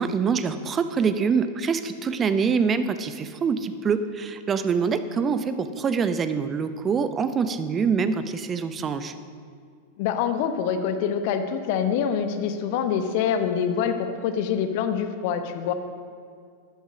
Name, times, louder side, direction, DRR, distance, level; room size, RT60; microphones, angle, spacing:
voice 1, 0.0-9.1, right 5 dB, 25° right, 11 dB, 0.7 m, -25 dB
voice 2, 10.0-15.7, left 7 dB, 50° left, 8 dB, 0.9 m, -25 dB
13.0 x 9.3 x 5.1 m, 2.2 s
figure-of-eight pair, 90°, 0 cm